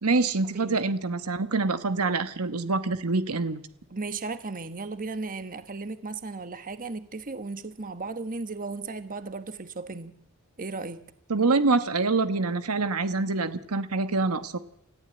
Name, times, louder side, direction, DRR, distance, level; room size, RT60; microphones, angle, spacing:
voice 1, 0.0-3.6 11.3-14.6, right 3 dB, 85° right, 11 dB, 1.2 m, -25 dB
voice 2, 3.9-10.1 10.6-11.0, right 3 dB, 40° right, 10 dB, 1.3 m, -35 dB
28.5 x 14.5 x 8.9 m, 0.78 s
head